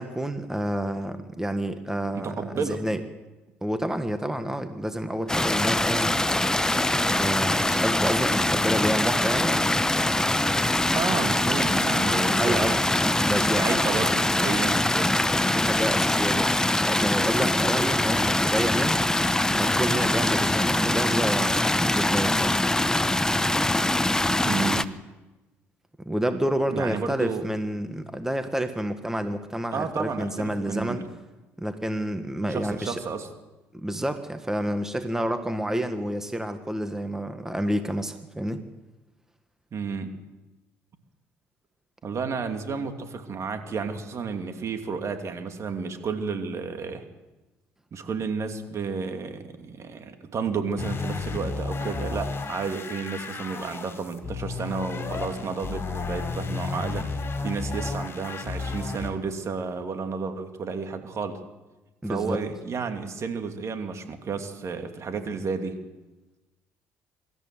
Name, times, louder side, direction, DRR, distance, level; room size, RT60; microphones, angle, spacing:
voice 1, 0.0-3.0 3.6-6.1 7.1-9.8 12.0-13.8 15.5-19.2 19.5-22.6 26.0-31.0 31.6-33.0 33.7-38.6 62.0-62.4, right 1 dB, 5° right, 8 dB, 1.6 m, -29 dB
voice 2, 2.1-2.8 10.9-12.8 13.3-15.2 24.4-24.9 26.7-27.4 29.7-31.1 32.4-33.3 39.7-40.1 42.0-47.0 47.9-61.4 62.1-65.8, right 5 dB, 45° right, 6 dB, 2.7 m, -32 dB
sound 1, 5.3-24.8, left 1 dB, 10° left, 1.0 m, -23 dB
sound 2, 50.8-59.1, left 4 dB, 35° left, 4.6 m, -32 dB
24.0 x 13.5 x 8.0 m, 1.1 s
hypercardioid pair, 55°, 7 cm